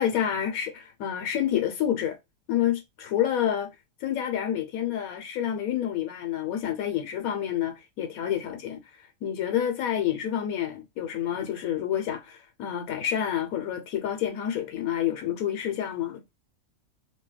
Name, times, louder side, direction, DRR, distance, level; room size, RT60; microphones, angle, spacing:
voice 1, 0.0-2.2 2.5-3.7 4.0-16.2, left 10 dB, 80° left, 1.1 m, -28 dB
2.8 x 2.2 x 3.1 m
omnidirectional pair, 1.5 m